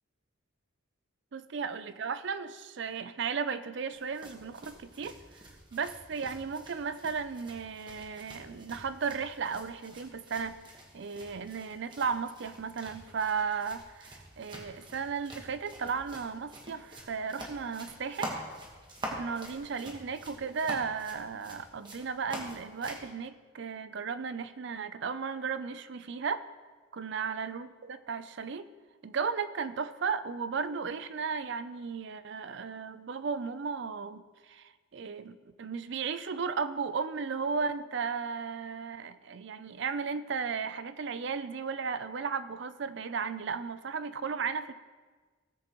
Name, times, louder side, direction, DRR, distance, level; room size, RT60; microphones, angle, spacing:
voice 1, 1.3-5.4 5.7-10.6 10.9-18.3 19.2-26.4 26.9-28.6 29.0-44.7, right 5 dB, 55° right, 12 dB, 0.4 m, -35 dB
sound 1, 3.9-23.1, right 1 dB, 20° right, 1.4 m, -46 dB
17.0 x 7.7 x 3.0 m, 1.4 s
head